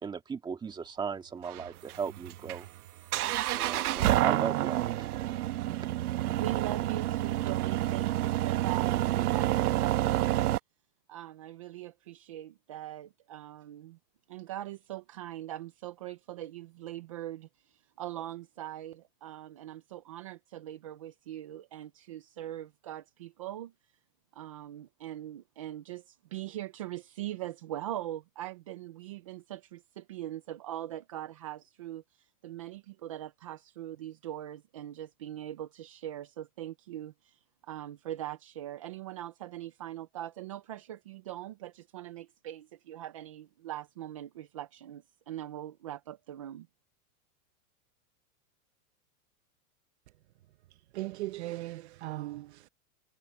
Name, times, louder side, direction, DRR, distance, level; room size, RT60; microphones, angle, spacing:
voice 1, 0.0-2.7 3.5-5.1, right 6 dB, 10° right, 1.9 m, -37 dB
sound 1, 1.4-10.6, right 14 dB, 90° right, 1.2 m, -29 dB
voice 2, 6.4-10.5 11.1-14.0 14.3-23.7 24.3-46.7, right 13 dB, 25° right, 0.3 m, -41 dB
voice 3, 50.9-52.7, right 17 dB, 50° right, 0.7 m, -38 dB
supercardioid pair, 165°, 43 cm